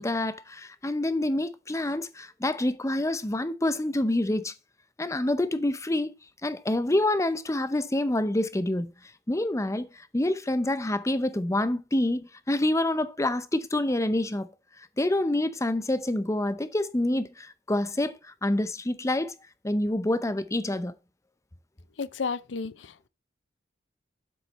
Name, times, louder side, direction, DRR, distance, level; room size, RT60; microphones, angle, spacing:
voice 1, 0.0-4.5 5.0-6.1 6.4-8.9 9.3-14.5 15.0-18.2 18.4-19.3 19.6-20.9, left 1 dB, 15° left, 0.7 m, -27 dB
voice 2, 22.0-23.1, left 5 dB, 75° left, 0.6 m, -33 dB
8.9 x 7.9 x 4.1 m
head